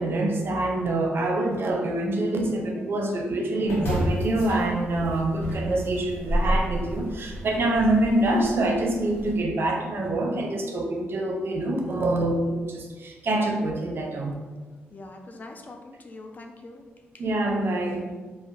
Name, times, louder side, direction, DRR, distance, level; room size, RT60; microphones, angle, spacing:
voice 1, 0.0-14.3 17.2-18.1, right 1 dB, 55° right, 2 dB, 0.5 m, -25 dB
sound 1, 3.6-9.3, equal, 65° left, 0.8 m, -30 dB
voice 2, 14.9-16.9 17.1-17.2, left 2 dB, 35° left, 4 dB, 0.3 m, -43 dB
2.6 x 2.0 x 2.5 m, 1.3 s
supercardioid pair, 55°, 5 cm